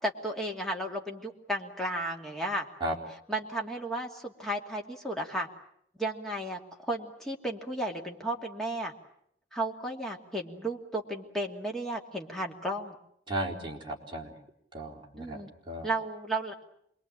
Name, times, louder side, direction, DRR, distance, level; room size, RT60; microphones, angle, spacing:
voice 1, 0.0-2.7 3.3-5.5 6.0-8.9 9.5-13.0 15.2-15.5 15.8-16.6, right 1 dB, ahead, 0 dB, 2.6 m, -34 dB
voice 2, 13.3-14.4 14.7-15.9, right 1 dB, 25° right, -1 dB, 4.0 m, -35 dB
27.0 x 22.0 x 8.9 m, 0.70 s
head